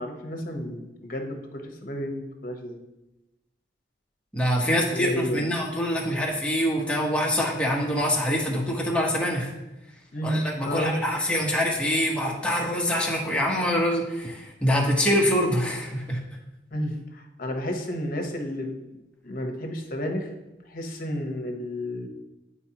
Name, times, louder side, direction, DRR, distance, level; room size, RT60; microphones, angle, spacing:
voice 1, 0.0-2.8 4.6-5.5 10.1-10.4 10.6-11.0 16.7-18.8 19.2-20.3 20.7-22.1, equal, 50° left, 3 dB, 1.0 m, -31 dB
voice 2, 4.3-9.5 10.2-16.2, equal, 5° left, -3 dB, 1.1 m, -25 dB
9.7 x 4.4 x 2.9 m, 0.97 s
head